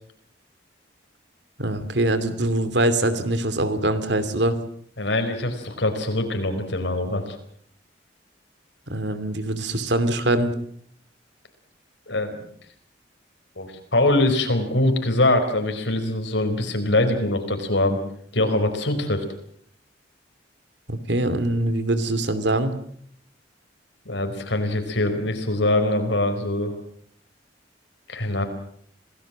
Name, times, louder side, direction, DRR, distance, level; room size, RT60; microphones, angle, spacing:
voice 1, 1.6-4.6 8.9-10.5 20.9-22.7, right 1 dB, 65° right, 12 dB, 2.7 m, -23 dB
voice 2, 5.0-7.4 12.1-12.4 13.6-18.0 18.3-19.2 24.0-26.7 28.1-28.4, left 1 dB, 75° left, 7 dB, 4.8 m, -23 dB
27.0 x 18.5 x 7.5 m, 0.65 s
head